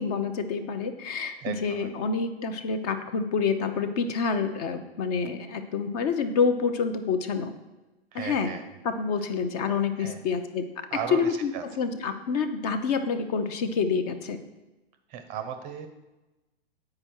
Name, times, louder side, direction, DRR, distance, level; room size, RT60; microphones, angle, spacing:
voice 1, 0.0-7.5 8.1-8.5 8.8-10.6 11.1-11.5 11.8-14.4, left 5 dB, 40° left, 9 dB, 0.6 m, -27 dB
voice 2, 1.4-1.9 8.1-8.6 10.0-10.2 10.9-11.6 15.1-15.9, right 8 dB, 25° right, 7 dB, 0.5 m, -36 dB
8.8 x 4.8 x 4.4 m, 1.1 s
hypercardioid pair, 115°, 32 cm